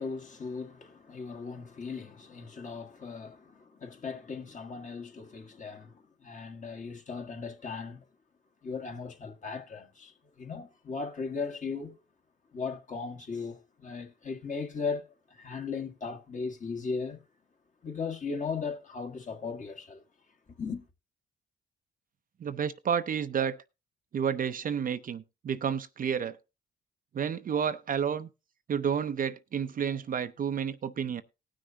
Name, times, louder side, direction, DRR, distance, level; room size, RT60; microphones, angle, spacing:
voice 1, 0.0-8.1 8.6-12.0 12.5-17.2 17.8-20.0 20.6-20.8, left 5 dB, 40° left, 1.7 m, -37 dB
voice 2, 22.4-23.6 24.1-26.4 27.1-28.3 28.7-31.2, right 7 dB, 45° right, 0.6 m, -30 dB
19.0 x 6.3 x 2.8 m
cardioid pair, 90°, 20 cm